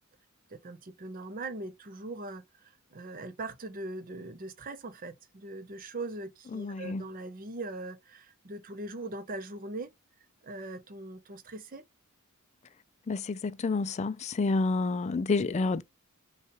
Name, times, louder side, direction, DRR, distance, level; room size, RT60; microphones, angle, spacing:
voice 1, 0.5-9.9 10.4-11.8, right 2 dB, 40° right, 0.6 m, -41 dB
voice 2, 6.5-7.0 13.1-15.8, left 3 dB, 30° left, 0.3 m, -29 dB
5.6 x 2.3 x 3.0 m
head